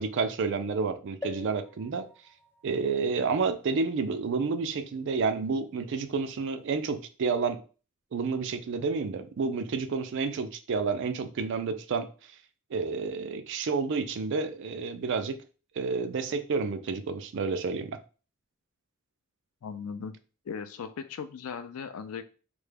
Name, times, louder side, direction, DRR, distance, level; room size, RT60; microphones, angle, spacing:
voice 1, 0.0-2.0 2.6-7.6 8.1-12.1 12.7-15.4 15.8-18.0, right 4 dB, 60° right, 9 dB, 0.4 m, -30 dB
sound 1, 1.2-4.9 5.5-5.6 5.8-5.9, left 2 dB, 10° left, 0.3 m, -47 dB
voice 2, 19.6-20.2 20.5-22.2, left 6 dB, 90° left, 11 dB, 0.4 m, -38 dB
3.4 x 2.1 x 3.3 m, 0.36 s
head